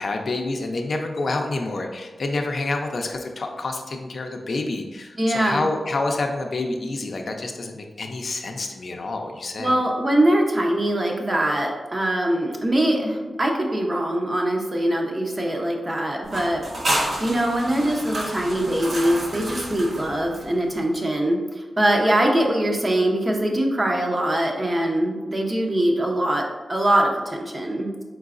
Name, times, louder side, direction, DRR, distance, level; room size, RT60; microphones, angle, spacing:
voice 1, 0.0-9.7, left 2 dB, 60° left, 3 dB, 0.5 m, -28 dB
voice 2, 5.2-5.7 9.6-16.6 17.2-28.0, right 1 dB, 30° right, 1 dB, 0.7 m, -22 dB
sound 1, 16.2-20.8, right 1 dB, 65° right, 1.0 m, -30 dB
4.5 x 3.8 x 2.5 m, 1.3 s
cardioid pair, 75°, 0 cm